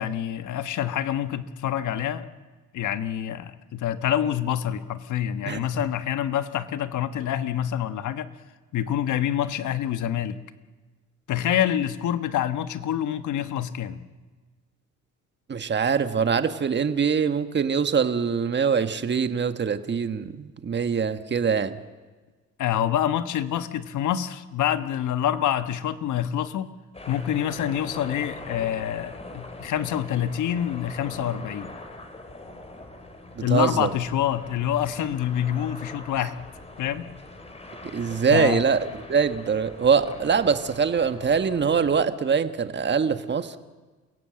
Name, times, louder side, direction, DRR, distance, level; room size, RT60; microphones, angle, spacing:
voice 1, 0.0-2.3 2.7-8.3 8.7-10.4 11.3-14.0 22.6-26.7 27.1-31.7 33.4-36.4 36.8-37.1 38.3-38.6, left 10 dB, 80° left, 11 dB, 1.3 m, -26 dB
voice 2, 15.5-21.8 33.3-33.9 37.8-43.6, right 6 dB, 35° right, 9 dB, 1.4 m, -23 dB
sound 1, 26.9-42.1, left 2 dB, 20° left, 3.2 m, -42 dB
29.0 x 17.0 x 7.7 m, 1.3 s
cardioid pair, 90°, 30 cm